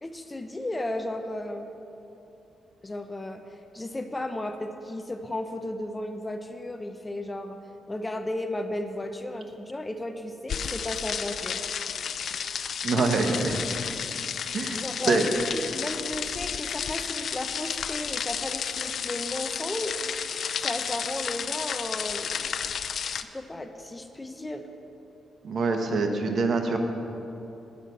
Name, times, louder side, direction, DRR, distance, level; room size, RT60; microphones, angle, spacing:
voice 1, 0.0-1.7 2.8-7.6 7.9-11.6 14.7-20.0 20.6-22.5 23.1-24.7, left 1 dB, 15° left, 7 dB, 0.6 m, -34 dB
sound 1, 10.5-23.2, left 7 dB, 60° left, 0.4 m, -32 dB
voice 2, 12.8-13.6 14.5-15.3 25.4-26.8, right 3 dB, 55° right, 4 dB, 1.0 m, -25 dB
9.1 x 6.0 x 8.1 m, 2.9 s
cardioid pair, 90°, 0 cm